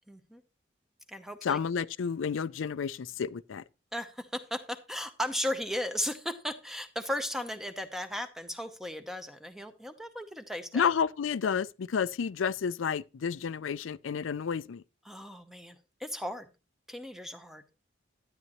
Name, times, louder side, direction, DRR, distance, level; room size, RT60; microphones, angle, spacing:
voice 1, 0.1-0.4 1.1-1.6 3.9-10.9 15.1-16.5 16.9-17.6, equal, ahead, 0.8 m, -36 dB
voice 2, 1.4-3.6 10.7-14.8, left 6 dB, 85° left, 0.4 m, -30 dB
12.5 x 9.6 x 3.0 m
head